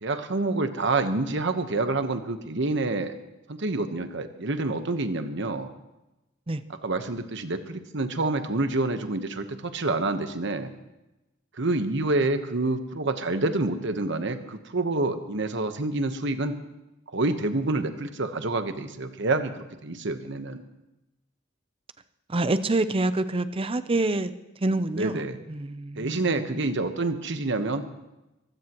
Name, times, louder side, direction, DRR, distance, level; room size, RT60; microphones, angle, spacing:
voice 1, 0.0-3.2 3.5-5.7 6.8-10.7 11.6-16.6 17.1-20.6 24.9-25.4 26.0-27.8, right 2 dB, 65° right, 8 dB, 1.2 m, -27 dB
voice 2, 22.3-24.3 24.6-26.5, right 2 dB, 30° right, 12 dB, 0.6 m, -27 dB
23.0 x 16.0 x 3.1 m, 0.99 s
head